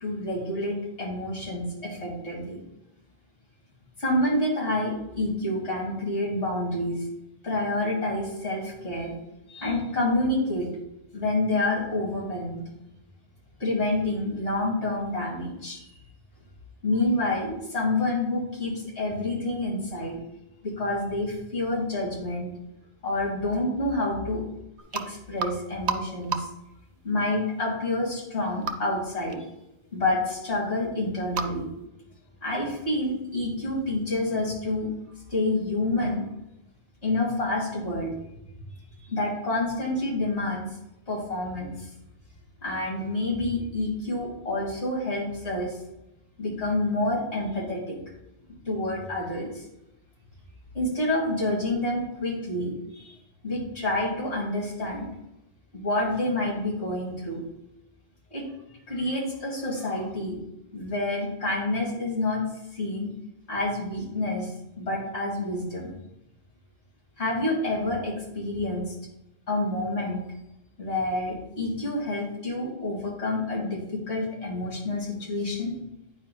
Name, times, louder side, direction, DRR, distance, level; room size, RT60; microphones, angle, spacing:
voice 1, 0.0-2.6 4.0-7.0 7.4-9.1 9.5-10.7 11.1-12.6 13.6-15.9 16.8-20.2 20.6-22.5 23.0-24.4 24.9-26.5 27.0-29.4 29.9-31.7 32.4-34.9 35.3-36.2 37.0-38.2 39.1-40.7 41.1-41.9 42.6-45.8 46.4-48.0 48.6-49.7 50.7-53.1 53.4-55.1 55.7-57.4 58.3-58.4 58.9-60.4 60.7-62.4 62.7-63.1 63.5-65.9 67.2-68.9 69.5-70.3 70.8-75.7, left 2 dB, 85° left, -5 dB, 2.4 m, -28 dB
sound 1, 24.8-25.0 25.4-26.0 26.2-26.7 28.6-28.7 29.3-29.4 30.5-30.6 30.8-30.9 31.3-31.5, right 5 dB, 80° right, 0.8 m, -29 dB
8.9 x 4.8 x 2.2 m, 0.88 s
omnidirectional pair, 1.1 m